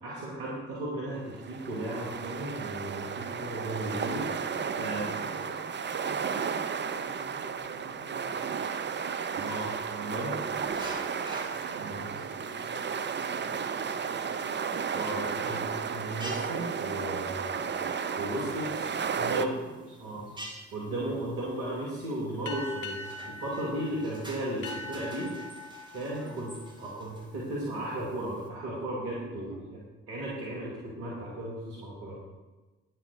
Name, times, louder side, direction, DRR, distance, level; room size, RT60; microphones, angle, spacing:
voice 1, 0.0-4.3 4.8-5.1 9.3-10.4 11.7-12.1 14.9-17.6 18.2-19.7 20.0-20.2 20.7-25.3 25.9-26.5 26.8-29.8 30.1-32.2, right 1 dB, 75° right, -5 dB, 2.4 m, -35 dB
sound 1, 1.3-19.5, right 6 dB, 30° right, 0.7 m, -33 dB
voice 2, 4.6-8.9 11.1-14.5 19.0-20.4 23.8-24.0 26.0-26.5 29.5-29.6, right 1 dB, 60° right, -2 dB, 2.7 m, -48 dB
sound 2, 10.7-28.5, right 1 dB, 10° right, 2.7 m, -50 dB
sound 3, 22.4-27.5, left 2 dB, 55° left, 1.6 m, -43 dB
9.7 x 7.5 x 5.3 m, 1.2 s
hypercardioid pair, 45°, 36 cm